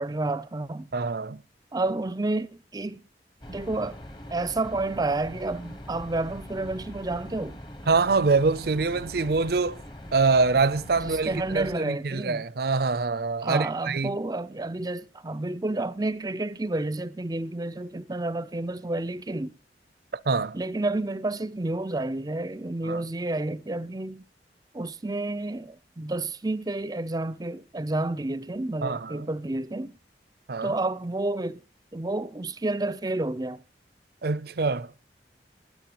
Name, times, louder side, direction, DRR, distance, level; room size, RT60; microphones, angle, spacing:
voice 1, 0.0-0.9 1.7-3.0 3.5-4.0 4.3-7.6 11.0-12.4 13.4-19.6 20.5-24.3 24.7-30.0 30.6-31.6 31.9-33.6, right 2 dB, 20° right, 0.6 m, -30 dB
voice 2, 0.9-1.4 7.9-9.8 10.1-14.2 20.3-20.6 22.8-23.1 28.8-29.3 30.5-30.8 34.2-34.9, right 4 dB, 60° right, 0.6 m, -25 dB
sound 1, 3.4-11.8, equal, 25° left, 1.2 m, -42 dB
20.0 x 9.5 x 3.0 m
head